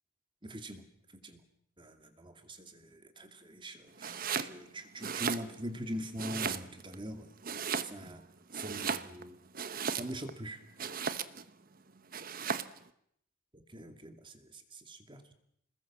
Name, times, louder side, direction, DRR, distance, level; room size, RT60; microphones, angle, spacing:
voice 1, 0.4-0.9 1.2-1.4 1.8-7.3 7.8-8.2 8.5-9.4 9.9-10.6 13.5-15.3, equal, 25° right, 7 dB, 2.5 m, -43 dB
Domestic sounds home sounds, 4.0-4.5 4.9-5.8 6.2-7.0 7.4-8.2 8.5-10.3 10.8-11.5 12.1-12.8, right 6 dB, 45° right, 1.0 m, -36 dB
27.0 x 20.5 x 7.5 m, 0.72 s
head